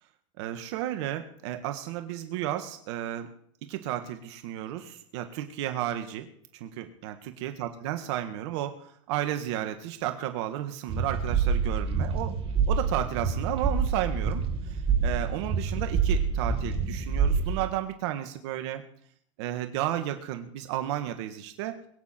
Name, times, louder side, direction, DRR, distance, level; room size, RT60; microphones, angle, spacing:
voice 1, 0.4-3.3 3.7-6.3 6.5-12.4 12.7-18.8 19.4-21.8, right 12 dB, 65° right, 7 dB, 1.7 m, -33 dB
sound 1, 10.9-17.6, right 5 dB, 35° right, 2.7 m, -27 dB
22.5 x 9.5 x 4.5 m, 0.65 s
hypercardioid pair, 95°, 16 cm